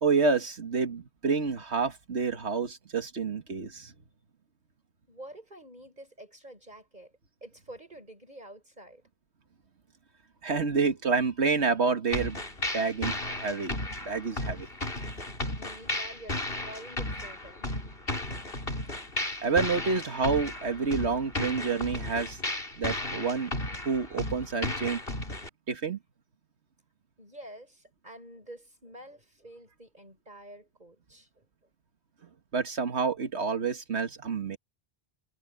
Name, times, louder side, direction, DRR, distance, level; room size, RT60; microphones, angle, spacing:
voice 1, 0.0-3.9 10.4-12.4 12.7-13.8 14.1-14.7 19.4-22.4 22.8-23.5 23.9-25.0 25.7-26.0 32.5-34.6, right 4 dB, 90° right, 2.0 m, -28 dB
voice 2, 5.1-7.1 7.4-9.0 15.6-17.9 27.2-31.5, right 1 dB, 40° right, 7.2 m, -48 dB
sound 1, 12.1-25.5, left 1 dB, 60° left, 4.4 m, -34 dB
omnidirectional pair, 1.1 m